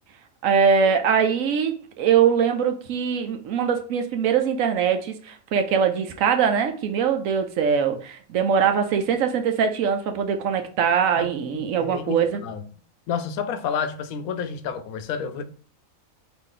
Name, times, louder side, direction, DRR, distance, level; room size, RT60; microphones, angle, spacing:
voice 1, 0.4-12.4, right 7 dB, 70° right, 1.0 m, -22 dB
voice 2, 11.5-12.6 13.1-15.4, left 7 dB, 75° left, 1.0 m, -30 dB
4.2 x 2.9 x 3.8 m
omnidirectional pair, 1.5 m